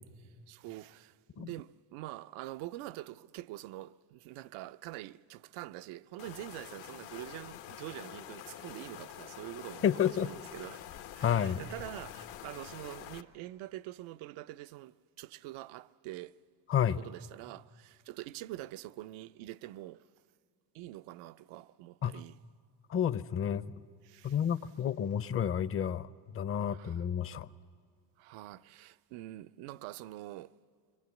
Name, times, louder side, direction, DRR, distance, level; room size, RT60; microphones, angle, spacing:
voice 1, 0.2-10.9 11.1-16.4 17.0-20.1 20.7-22.4 24.0-24.4 26.7-27.0 28.2-30.5, right 16 dB, 85° right, 0.6 m, -45 dB
sound 1, 6.2-13.2, left 11 dB, 80° left, 1.1 m, -47 dB
voice 2, 9.8-10.3 11.2-11.6 16.7-17.0 22.0-22.2 22.9-23.8 24.2-27.5, left 8 dB, 30° left, 0.6 m, -30 dB
24.5 x 23.5 x 8.3 m
cardioid pair, 110°, 47 cm